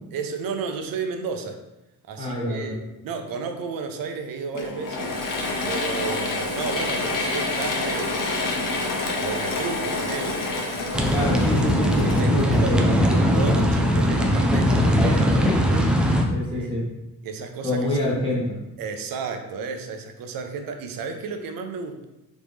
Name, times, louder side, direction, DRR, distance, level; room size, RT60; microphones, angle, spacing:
voice 1, 0.1-1.6 2.0-5.2 5.7-8.2 8.6-10.4 11.0-11.3 12.2-16.0 16.5-16.7 17.2-18.0 18.8-22.0, right 5 dB, 80° right, 6 dB, 0.6 m, -33 dB
voice 2, 2.2-2.7 11.1-12.9 16.3-16.8 17.6-18.5, left 1 dB, 15° left, -6 dB, 1.4 m, -26 dB
Mechanisms / Drill, 4.5-13.2, left 2 dB, 70° left, 0.8 m, -28 dB
sound 1, 10.9-16.2, equal, 5° right, 0.3 m, -20 dB
4.1 x 3.2 x 3.4 m, 0.98 s
wide cardioid pair, 155°, 34 cm